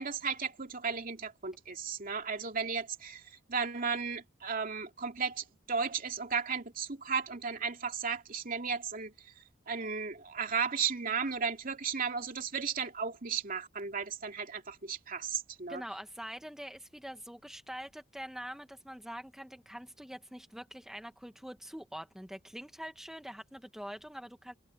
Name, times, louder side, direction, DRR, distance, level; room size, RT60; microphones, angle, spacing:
voice 1, 0.0-3.2 3.5-9.1 9.7-15.8, right 5 dB, 45° right, 2.6 m, -35 dB
voice 2, 15.7-24.5, equal, ahead, 1.3 m, -44 dB
head